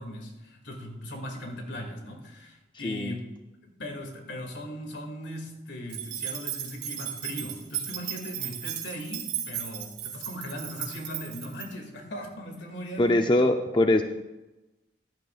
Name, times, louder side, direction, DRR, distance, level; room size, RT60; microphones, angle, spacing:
voice 1, 0.0-3.3 3.6-13.2, equal, 85° left, 2 dB, 2.2 m, -39 dB
voice 2, 2.8-3.2 13.0-14.0, left 1 dB, 25° left, 6 dB, 0.5 m, -22 dB
sound 1, 5.9-11.7, right 10 dB, 85° right, 2.8 m, -35 dB
14.5 x 11.0 x 2.4 m, 1.0 s
head